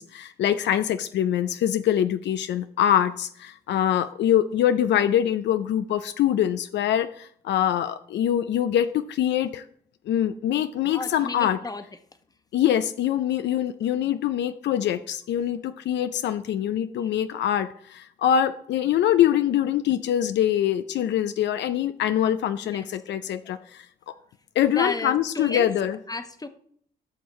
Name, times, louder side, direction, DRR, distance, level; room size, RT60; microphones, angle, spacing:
voice 1, 0.0-9.6 10.1-11.6 12.5-23.9 24.6-26.0, left 10 dB, 70° left, 11 dB, 0.5 m, -24 dB
voice 2, 10.9-11.8 22.6-22.9 24.6-25.7 26.1-26.5, left 3 dB, 20° left, 9 dB, 1.0 m, -32 dB
12.5 x 6.2 x 3.1 m, 0.63 s
supercardioid pair, 55°, 19 cm